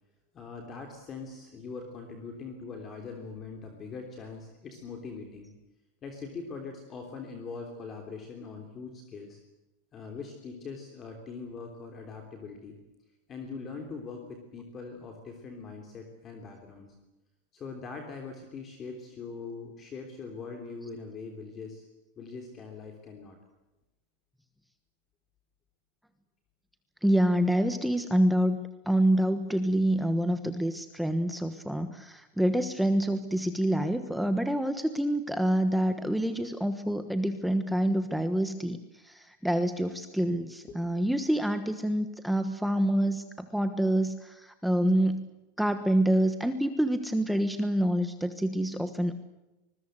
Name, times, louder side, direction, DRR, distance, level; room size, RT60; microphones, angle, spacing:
voice 1, 0.3-5.5 6.0-9.4 9.9-12.8 13.3-16.9 17.5-21.9 22.2-23.4 40.7-40.8, left 4 dB, 20° left, 4 dB, 3.3 m, -42 dB
voice 2, 27.0-45.3 45.6-49.1, right 1 dB, ahead, 8 dB, 1.2 m, -27 dB
25.5 x 21.0 x 7.8 m, 1.0 s
supercardioid pair, 170°, 0 cm